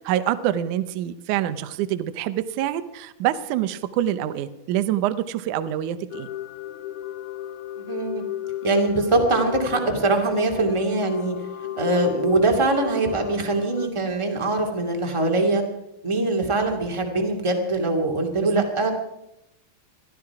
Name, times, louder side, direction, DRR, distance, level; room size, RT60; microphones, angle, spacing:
voice 1, 0.0-6.3 18.4-18.6, right 12 dB, 70° right, 12 dB, 2.0 m, -26 dB
sound 1, 6.1-13.9, left 12 dB, 75° left, 2.0 m, -34 dB
voice 2, 7.9-8.2 8.6-11.3 11.8-15.6 16.0-18.9, right 2 dB, 10° right, 2 dB, 1.7 m, -22 dB
21.0 x 14.0 x 4.8 m, 0.86 s
omnidirectional pair, 4.2 m